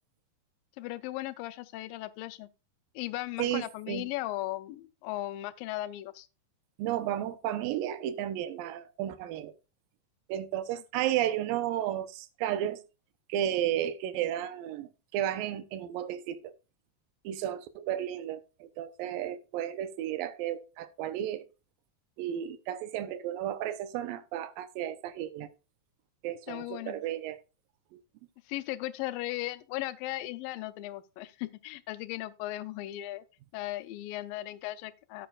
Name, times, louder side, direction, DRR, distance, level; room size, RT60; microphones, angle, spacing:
voice 1, 0.8-2.5 3.0-6.3 26.5-27.0 28.5-33.2 33.5-35.3, left 16 dB, 90° left, 2.4 m, -37 dB
voice 2, 3.4-4.1 6.8-9.5 10.3-12.8 13.3-16.5 17.2-21.4 22.2-25.5 26.2-27.4 27.9-28.0, right 11 dB, 90° right, 2.4 m, -33 dB
13.5 x 7.9 x 2.3 m
omnidirectional pair, 3.9 m